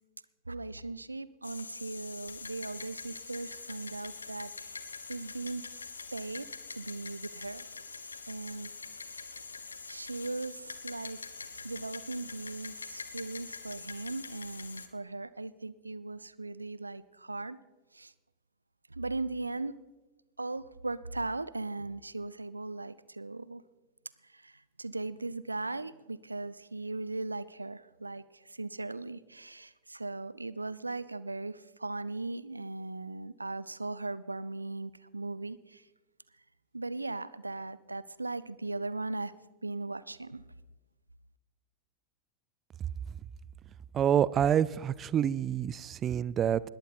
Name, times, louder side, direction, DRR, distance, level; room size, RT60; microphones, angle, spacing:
voice 1, 0.5-4.8 5.1-5.6 6.1-7.7 8.3-8.7 9.0-9.3 9.9-11.2 11.6-17.6 17.9-18.1 18.9-19.8 20.4-23.6 24.3-24.5 24.8-35.8 36.7-39.3 39.6-40.4, right 2 dB, 80° right, 18 dB, 0.6 m, -38 dB
sound 1, 1.4-14.9, left 4 dB, 75° left, 1.0 m, -44 dB
voice 2, 43.9-46.6, right 9 dB, 25° right, 21 dB, 0.5 m, -27 dB
20.5 x 14.5 x 4.2 m, 1.1 s
figure-of-eight pair, 90°, 0 cm